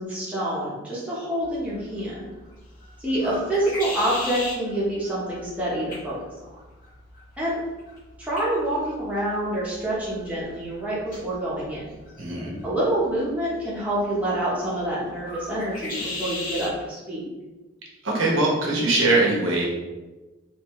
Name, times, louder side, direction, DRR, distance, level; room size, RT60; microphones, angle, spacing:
voice 1, 0.0-2.2 3.0-6.2 7.4-7.6 8.2-11.9 12.6-17.3, right 1 dB, 5° right, -8 dB, 0.9 m, -27 dB
sound 1, 1.4-16.8, left 2 dB, 40° left, 1.4 m, -39 dB
voice 2, 12.2-12.5 18.0-19.6, right 2 dB, 85° right, -3 dB, 1.1 m, -21 dB
4.2 x 2.6 x 3.1 m, 1.2 s
head